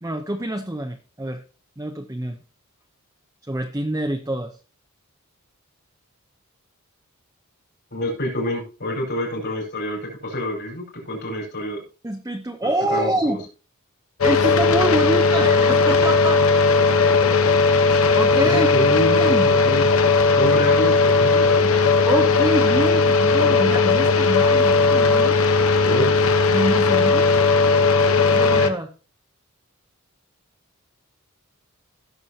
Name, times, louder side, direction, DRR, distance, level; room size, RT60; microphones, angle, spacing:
voice 1, 0.0-1.4 1.8-2.4 3.5-4.5 12.0-13.4 14.2-16.6 18.1-18.7 19.2-19.5 22.1-25.4 26.5-27.3 28.3-28.9, right 1 dB, 15° right, 5 dB, 0.7 m, -26 dB
voice 2, 7.9-11.8 12.9-13.4 18.4-19.8 20.3-21.8 25.8-26.1, equal, 50° left, 0 dB, 4.8 m, -27 dB
sound 1, 14.2-28.7, left 4 dB, 70° left, 1.0 m, -17 dB
16.5 x 6.9 x 2.8 m, 0.35 s
head